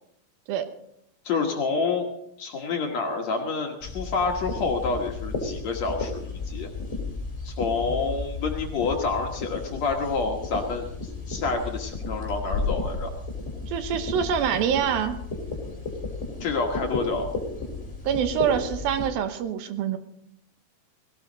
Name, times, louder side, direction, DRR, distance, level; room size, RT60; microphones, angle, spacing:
voice 1, 1.3-2.1 2.4-6.7 7.4-13.1 16.4-17.3, left 4 dB, 55° left, 2 dB, 2.1 m, -28 dB
Snow Movements, 3.8-19.1, left 3 dB, 20° left, 3.1 m, -33 dB
voice 2, 13.7-15.2 18.0-20.0, right 8 dB, 75° right, 9 dB, 2.7 m, -25 dB
18.0 x 17.5 x 4.0 m, 0.74 s
omnidirectional pair, 4.4 m